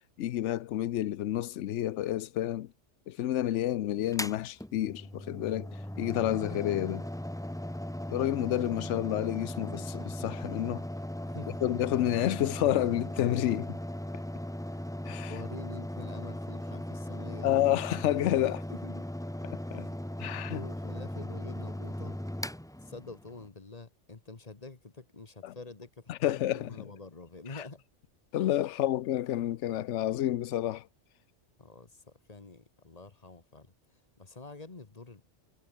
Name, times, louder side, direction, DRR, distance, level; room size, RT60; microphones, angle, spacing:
voice 1, 0.2-2.7 3.1-7.1 8.1-10.8 11.6-13.8 15.0-15.3 17.4-18.6 19.4-19.9 20.2-20.6 25.4-25.5 26.1-26.7 28.3-30.9, left 13 dB, 80° left, 1.0 m, -30 dB
Mechanical fan, 4.1-23.5, left 1 dB, 5° left, 0.6 m, -38 dB
voice 2, 11.2-11.7 14.7-14.9 15.3-17.6 18.7-19.1 19.7-20.0 20.5-22.2 22.8-27.8 31.6-35.2, left 3 dB, 35° left, 1.5 m, -47 dB
omnidirectional pair, 1.2 m